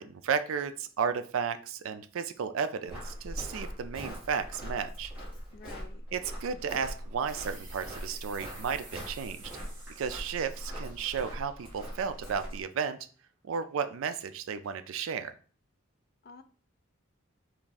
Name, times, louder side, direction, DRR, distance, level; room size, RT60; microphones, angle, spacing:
voice 1, 0.0-5.1 6.1-9.5 10.0-13.0 13.4-15.3, right 6 dB, 70° right, 10 dB, 0.4 m, -33 dB
Walk footsteps, 2.9-12.6, equal, 5° right, 1.6 m, -41 dB
voice 2, 5.5-6.0 16.2-16.4, left 5 dB, 45° left, 9 dB, 0.4 m, -48 dB
sound 1, 7.3-12.5, right 3 dB, 40° right, 1.0 m, -53 dB
3.4 x 2.5 x 3.9 m, 0.41 s
head